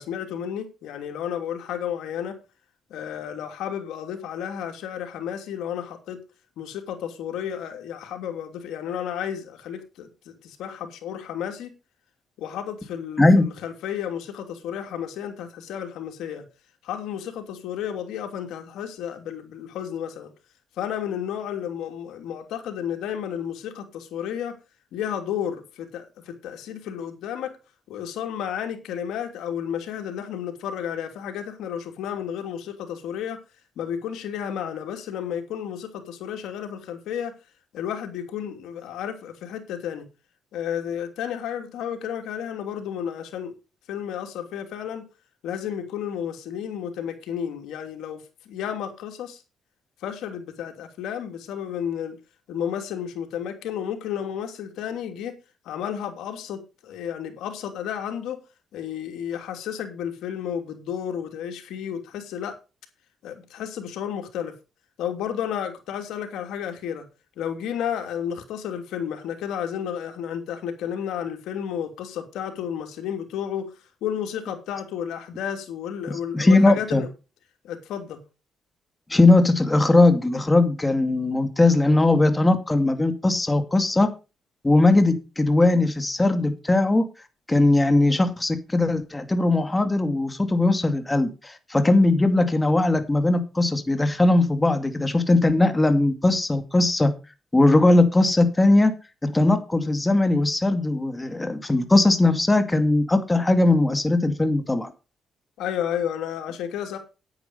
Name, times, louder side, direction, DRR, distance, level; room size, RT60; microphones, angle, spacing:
voice 1, 0.0-2.4 2.9-6.2 6.6-11.7 12.4-16.4 16.8-20.3 20.8-24.5 24.9-27.5 27.9-33.4 33.8-37.3 37.7-40.0 40.5-43.5 43.9-45.0 45.4-49.4 50.0-52.2 52.5-55.3 55.6-58.4 58.7-62.6 63.2-64.5 65.0-67.0 67.4-73.7 74.0-77.1 77.6-78.2 105.6-107.0, left 9 dB, 85° left, 2.9 m, -32 dB
voice 2, 76.3-77.0 79.1-84.1 84.6-87.1 87.5-97.1 97.5-98.9 99.2-104.9, left 2 dB, 15° left, 2.3 m, -19 dB
9.6 x 9.2 x 5.3 m
cardioid pair, 90°, 0 cm